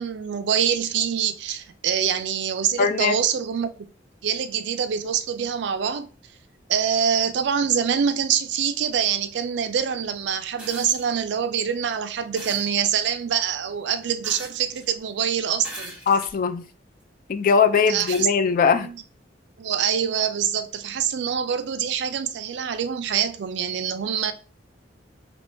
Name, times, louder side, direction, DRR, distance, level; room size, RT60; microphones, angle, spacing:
voice 1, 0.0-3.9 4.2-6.1 6.7-16.0 17.9-18.3 18.8-19.0 19.6-24.3, right 8 dB, 65° right, 0.4 m, -25 dB
voice 2, 2.8-3.1 16.1-16.6 17.3-18.9, left 6 dB, 50° left, 0.3 m, -20 dB
sound 1, 10.6-11.1 12.4-12.7 14.2-14.9 15.6-16.3 17.0-17.1 18.1-18.3 19.7-19.8, right 1 dB, 5° right, 1.1 m, -39 dB
3.5 x 2.9 x 2.6 m
head